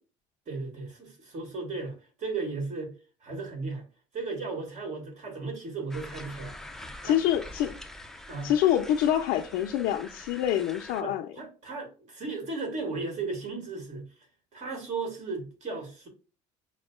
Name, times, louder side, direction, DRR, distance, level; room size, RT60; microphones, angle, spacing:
voice 1, 0.5-2.9 3.2-3.9 4.1-6.6 7.0-7.2 8.3-8.5 11.0-14.1 14.5-16.1, right 3 dB, 50° right, 1.7 m, -35 dB
sound 1, 5.9-11.0, left 1 dB, 5° left, 0.4 m, -45 dB
voice 2, 7.0-7.8 8.4-11.3, left 11 dB, 80° left, 0.4 m, -26 dB
6.1 x 2.1 x 2.3 m
supercardioid pair, 90°, 15 cm